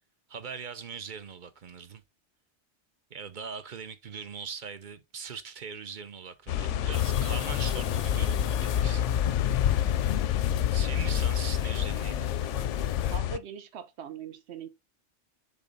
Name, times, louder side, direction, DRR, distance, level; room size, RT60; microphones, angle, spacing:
voice 1, 0.3-2.0 3.1-9.1 10.7-12.3, right 6 dB, 50° right, 0.8 m, -41 dB
sound 1, 6.5-13.4, left 11 dB, 85° left, 0.9 m, -29 dB
sound 2, 6.9-13.2, left 9 dB, 65° left, 0.4 m, -32 dB
voice 2, 13.1-14.7, right 8 dB, 70° right, 1.1 m, -41 dB
7.0 x 4.0 x 3.9 m
omnidirectional pair, 1.2 m